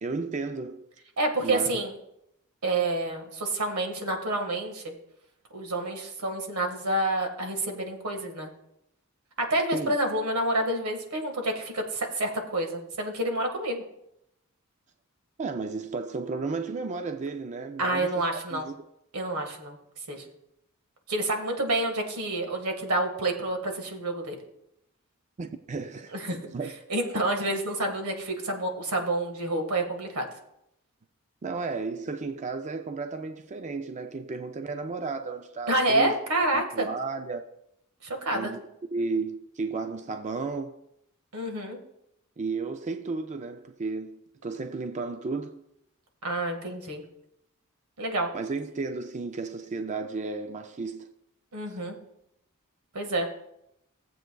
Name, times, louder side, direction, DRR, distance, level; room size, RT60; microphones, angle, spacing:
voice 1, 0.0-0.9 1.4-1.8 9.7-10.0 15.4-18.2 18.5-18.8 25.4-26.7 31.4-36.2 36.5-37.5 38.3-38.6 38.9-40.8 42.4-45.6 48.3-51.1 51.7-51.8, right 4 dB, 35° right, 0.4 m, -33 dB
voice 2, 1.2-1.9 2.6-4.9 5.5-8.5 9.5-13.8 17.8-18.7 19.1-19.8 20.1-20.3 21.1-24.4 26.1-26.4 26.9-30.3 35.7-36.9 38.0-38.5 41.3-41.8 46.2-47.0 48.0-48.3 51.5-52.0 52.9-53.3, right 1 dB, 85° right, 1.6 m, -28 dB
17.5 x 7.8 x 2.3 m
head